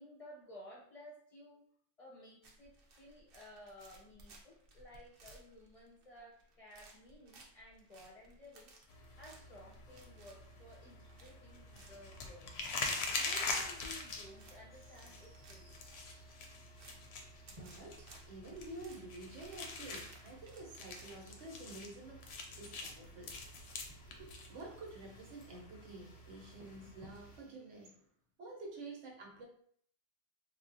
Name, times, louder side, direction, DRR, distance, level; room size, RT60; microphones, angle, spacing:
voice 1, 0.0-1.6 2.0-12.5 13.1-15.8, left 1 dB, 35° left, -5 dB, 0.7 m, -56 dB
sound 1, 2.4-21.5, right 2 dB, 60° right, 0.7 m, -62 dB
sound 2, 8.9-27.4, left 3 dB, 70° left, 0.8 m, -45 dB
sound 3, 14.7-27.9, right 1 dB, 25° right, 0.9 m, -65 dB
voice 2, 17.2-28.0 28.4-29.5, right 2 dB, 90° right, 0 dB, 1.1 m, -50 dB
3.4 x 2.4 x 2.6 m, 0.62 s
omnidirectional pair, 1.2 m